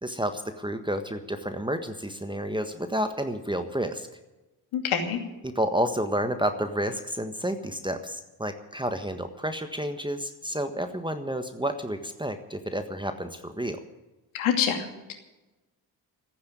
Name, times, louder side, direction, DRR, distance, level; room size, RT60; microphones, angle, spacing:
voice 1, 0.0-4.1 5.4-13.8, equal, 10° right, 8 dB, 1.5 m, -30 dB
voice 2, 4.7-5.2 14.3-15.1, left 8 dB, 70° left, 5 dB, 2.7 m, -26 dB
14.5 x 9.6 x 9.6 m, 1.1 s
hypercardioid pair, 50°, 50 cm